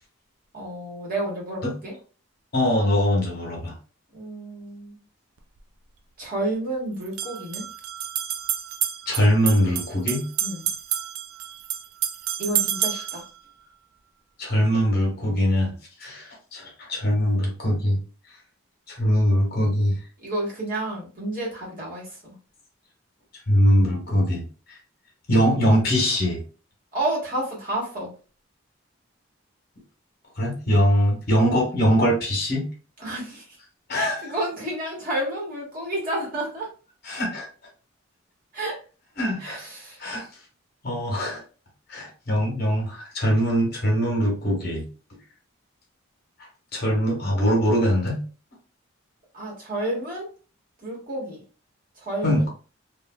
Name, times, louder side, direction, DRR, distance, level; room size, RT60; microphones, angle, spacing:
voice 1, 0.5-1.9 4.1-5.0 6.2-7.6 10.4-10.6 12.4-13.2 20.2-22.4 26.9-28.1 33.0-33.6 33.9-36.7 38.5-38.8 39.4-40.0 49.3-50.3 50.8-51.4 52.0-52.4, right 1 dB, 40° right, -4 dB, 1.2 m, -30 dB
voice 2, 2.5-3.7 9.1-10.2 12.9-13.0 14.4-15.7 16.0-18.0 18.9-20.0 23.5-24.4 24.7-24.8 25.3-26.4 30.3-32.7 33.9-34.3 37.0-37.5 39.2-39.6 40.0-40.3 40.8-41.4 41.9-44.8 46.7-48.2 52.2-52.5, equal, 45° left, -1 dB, 1.0 m, -22 dB
sound 1, 5.4-5.5 7.0-13.3, right 10 dB, 80° right, 0.4 m, -29 dB
3.2 x 2.4 x 2.2 m, 0.36 s
head